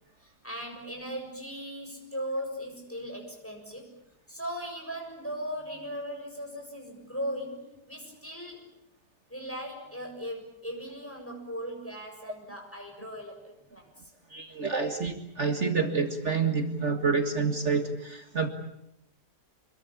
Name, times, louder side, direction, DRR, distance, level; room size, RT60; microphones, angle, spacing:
voice 1, 0.2-3.9 4.3-8.6 9.3-14.1, equal, 5° left, 1 dB, 7.1 m, -38 dB
voice 2, 14.3-18.5, right 4 dB, 45° right, 5 dB, 2.1 m, -28 dB
26.0 x 22.5 x 8.6 m, 0.82 s
omnidirectional pair, 1.8 m